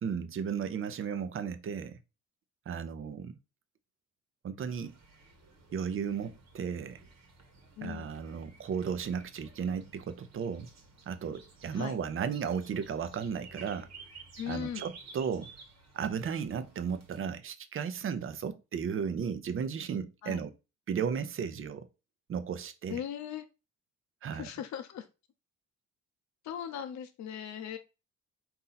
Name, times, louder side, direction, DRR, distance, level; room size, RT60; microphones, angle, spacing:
voice 1, 0.0-2.0 2.7-3.4 4.4-5.0 5.7-7.0 7.8-10.7 11.1-13.9 14.5-15.5 15.9-20.5 20.9-21.9 22.3-23.0 24.2-24.5, right 7 dB, 45° right, 0.6 m, -35 dB
sound 1, 4.7-17.2, right 4 dB, 60° right, 1.2 m, -54 dB
voice 2, 7.8-8.1 11.7-12.0 14.4-14.9 20.2-20.4 22.9-23.5 24.3-25.0 26.4-27.8, left 9 dB, 65° left, 0.7 m, -38 dB
4.1 x 2.7 x 3.9 m
cardioid pair, 90°, 30 cm